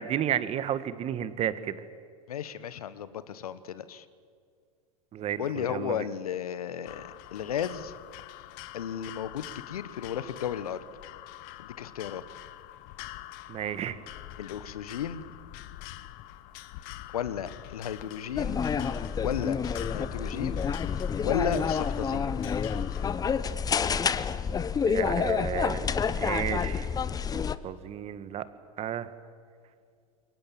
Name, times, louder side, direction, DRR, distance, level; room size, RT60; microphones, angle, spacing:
voice 1, 0.0-1.8 5.1-6.1 13.5-14.0 24.9-26.9 27.6-28.5 28.8-29.1, right 10 dB, 35° right, 13 dB, 1.7 m, -32 dB
voice 2, 2.3-4.0 5.4-7.9 8.7-10.8 11.6-12.2 14.4-15.4 17.1-18.6 19.2-19.6 19.9-20.6 21.2-22.3, left 9 dB, 75° left, 15 dB, 1.4 m, -34 dB
sound 1, 6.8-23.5, left 15 dB, 50° left, 1.3 m, -45 dB
sound 2, 18.4-27.6, left 6 dB, 20° left, 1.0 m, -28 dB
28.0 x 22.5 x 7.6 m, 2.2 s
hypercardioid pair, 100°, 19 cm